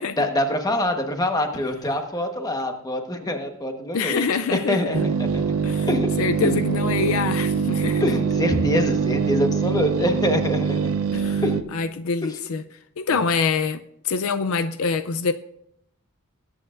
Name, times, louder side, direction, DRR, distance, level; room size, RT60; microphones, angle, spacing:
voice 1, 0.2-4.3 4.5-5.6 5.9-6.1 6.4-6.6 8.0-10.9 11.4-11.7 12.2-12.3 13.1-13.2, left 1 dB, 20° left, 5 dB, 1.2 m, -25 dB
voice 2, 3.9-5.0 5.6-5.9 6.2-8.0 11.1-11.4 11.7-12.6 13.0-15.3, left 5 dB, 70° left, 10 dB, 0.5 m, -25 dB
sound 1, 4.9-11.6, right 6 dB, 75° right, 0.6 m, -23 dB
20.5 x 8.8 x 2.5 m, 0.76 s
head